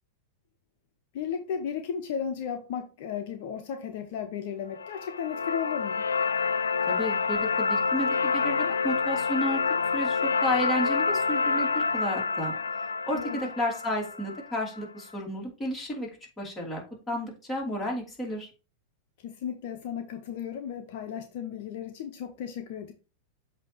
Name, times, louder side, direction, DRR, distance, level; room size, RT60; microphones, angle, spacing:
voice 1, 1.1-6.0 13.1-13.5 19.2-22.9, left 8 dB, 60° left, 0.8 m, -35 dB
sound 1, 4.7-14.8, left 4 dB, 90° left, 0.3 m, -28 dB
voice 2, 6.9-9.6 9.9-12.5 13.1-16.1 16.4-18.5, left 1 dB, 15° left, 2.7 m, -32 dB
7.5 x 2.8 x 4.5 m
hypercardioid pair, 105°, 0 cm